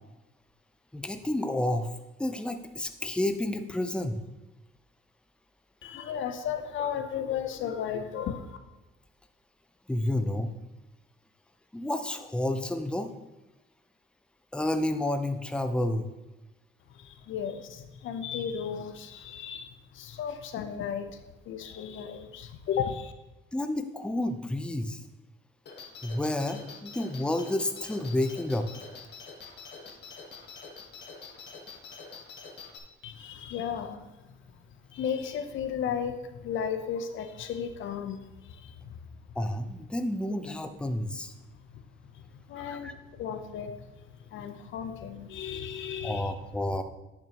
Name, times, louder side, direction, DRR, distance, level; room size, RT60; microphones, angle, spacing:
voice 1, 0.9-1.9 2.2-4.2 9.9-10.5 11.7-13.1 14.5-16.1 23.5-25.0 26.0-28.7 39.4-41.3 42.8-42.9 46.0-46.8, left 1 dB, 5° left, 8 dB, 0.6 m, -30 dB
voice 2, 5.8-8.6 16.9-23.1 33.0-39.3 41.4-46.3, left 8 dB, 75° left, 8 dB, 0.8 m, -35 dB
sound 1, 25.7-32.8, left 5 dB, 60° left, 1.3 m, -46 dB
10.5 x 6.1 x 3.0 m, 1.0 s
cardioid pair, 90°, 20 cm